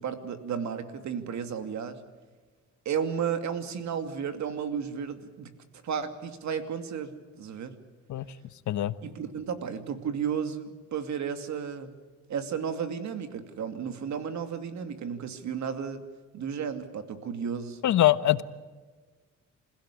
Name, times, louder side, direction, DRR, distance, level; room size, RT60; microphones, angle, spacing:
voice 1, 0.0-2.0 2.8-5.5 5.8-7.1 7.4-7.7 9.0-11.9 12.3-16.0 16.3-17.8, right 7 dB, 65° right, 8 dB, 2.5 m, -33 dB
voice 2, 17.8-18.4, left 13 dB, 70° left, 14 dB, 1.1 m, -23 dB
27.0 x 16.5 x 8.5 m, 1.4 s
cardioid pair, 90°, 30 cm